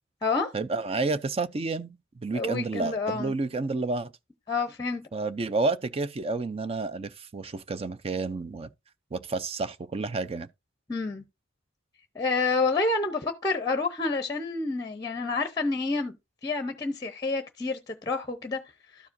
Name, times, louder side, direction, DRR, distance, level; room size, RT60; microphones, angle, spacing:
voice 1, 0.5-4.1 5.1-8.7 9.1-10.5, right 3 dB, 30° right, 0.4 m, -30 dB
voice 2, 2.3-3.3 4.5-5.0 10.9-11.2 12.1-16.1 16.4-18.6, left 3 dB, 20° left, 0.8 m, -28 dB
13.0 x 4.8 x 2.6 m
head